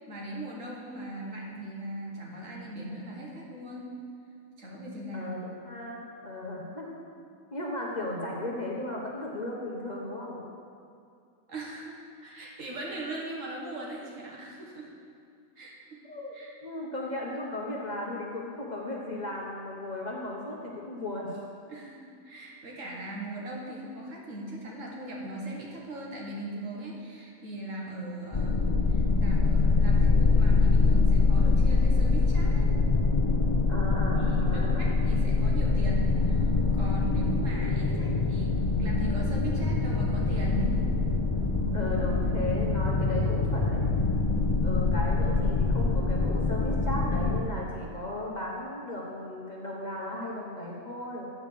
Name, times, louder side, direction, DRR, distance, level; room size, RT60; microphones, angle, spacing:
voice 1, 0.0-3.9 4.6-5.3 11.5-12.0 12.2-14.9 15.6-16.0 16.3-16.5 21.7-32.7 34.1-36.5 36.7-41.0, right 1 dB, 60° right, -3 dB, 1.8 m, -39 dB
voice 2, 5.1-7.0 7.5-10.5 16.0-16.3 16.6-21.3 33.7-34.9 38.1-38.2 41.7-43.9 44.6-51.3, left 1 dB, 35° left, -3 dB, 0.9 m, -36 dB
sound 1, 28.3-47.4, left 3 dB, 55° left, 0.3 m, -24 dB
8.3 x 5.1 x 6.8 m, 2.5 s
omnidirectional pair, 1.5 m